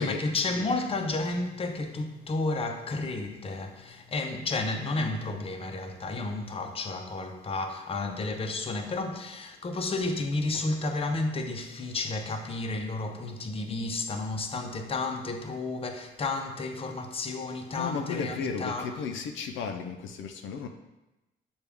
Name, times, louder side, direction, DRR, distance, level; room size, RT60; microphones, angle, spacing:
voice 1, 0.0-18.9, left 2 dB, 30° left, 0.6 m, -32 dB
voice 2, 17.8-20.7, left 5 dB, 80° left, 0.4 m, -34 dB
6.7 x 2.3 x 3.4 m
cardioid pair, 90°, 20 cm